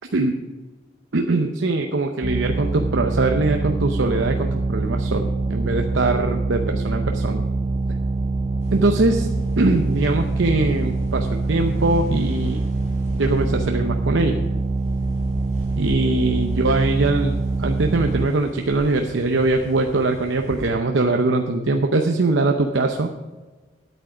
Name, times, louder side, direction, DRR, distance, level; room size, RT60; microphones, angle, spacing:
voice 1, 1.1-7.4 8.7-9.3 9.6-12.6 13.1-14.4 15.8-23.1, right 2 dB, 90° right, 4 dB, 0.8 m, -22 dB
sound 1, 2.2-18.3, right 3 dB, 30° right, 0.3 m, -24 dB
sound 2, 8.6-20.7, equal, 40° left, 3.8 m, -39 dB
10.0 x 8.9 x 6.1 m, 1.3 s
head